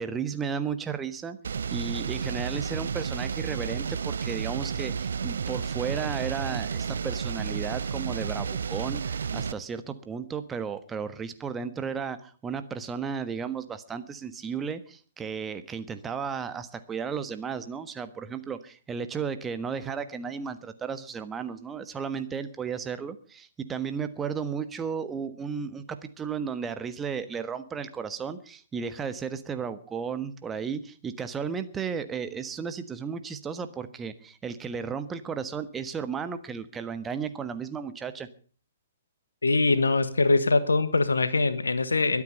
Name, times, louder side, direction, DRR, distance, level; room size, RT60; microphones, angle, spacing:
voice 1, 0.0-1.4 1.7-38.3, right 6 dB, 10° right, 10 dB, 1.3 m, -34 dB
sound 1, 1.4-9.5, right 6 dB, 55° right, 0.8 m, -31 dB
voice 2, 39.4-42.2, left 3 dB, 70° left, 13 dB, 1.3 m, -23 dB
23.0 x 8.7 x 5.5 m, 0.42 s
figure-of-eight pair, 125°, 0 cm